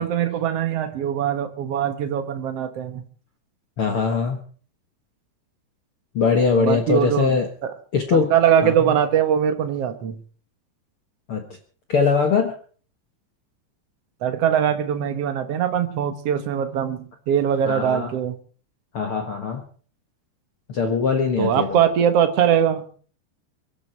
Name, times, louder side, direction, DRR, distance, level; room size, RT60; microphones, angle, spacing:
voice 1, 0.0-3.0 6.6-7.3 8.1-10.1 14.2-18.3 21.4-22.8, right 9 dB, 75° right, 9 dB, 1.4 m, -21 dB
voice 2, 3.8-4.4 6.1-7.5 7.9-8.3 8.6-8.9 11.3-11.4 11.9-12.5 17.7-18.1 18.9-19.6 20.7-21.8, left 5 dB, 65° left, 5 dB, 1.3 m, -21 dB
23.5 x 12.0 x 4.5 m, 0.43 s
omnidirectional pair, 4.8 m